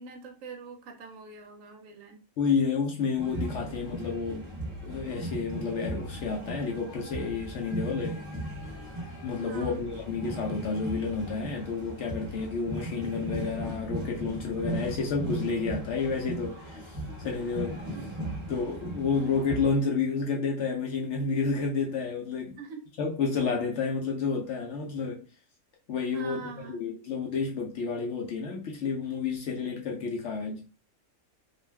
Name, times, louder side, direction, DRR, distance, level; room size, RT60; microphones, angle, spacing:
voice 1, 0.0-2.2 9.4-9.8 17.9-18.1 22.6-22.9 26.1-27.0, right 4 dB, 70° right, 0.9 m, -44 dB
voice 2, 2.4-4.6 4.8-8.2 9.2-17.8 18.5-22.6 23.0-25.3 25.9-30.7, left 5 dB, 65° left, 0.7 m, -30 dB
sound 1, 3.2-19.7, right 1 dB, 25° right, 0.7 m, -37 dB
2.5 x 2.2 x 3.2 m
omnidirectional pair, 1.5 m